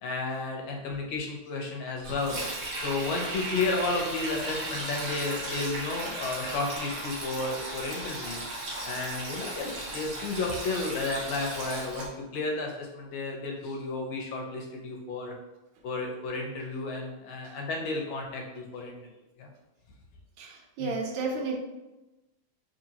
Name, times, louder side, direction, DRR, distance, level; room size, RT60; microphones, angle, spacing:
voice 1, 0.0-2.4 2.8-8.4 8.8-12.1 12.3-15.3 15.8-19.0 19.4-19.5 20.8-20.9, left 3 dB, 80° left, 1 dB, 1.5 m, -32 dB
Sink (filling or washing), 2.0-12.1, right 1 dB, 55° right, 1.1 m, -36 dB
voice 2, 20.4-21.6, right 3 dB, 85° right, 1 dB, 1.5 m, -32 dB
3.9 x 3.0 x 2.8 m, 1.0 s
omnidirectional pair, 2.2 m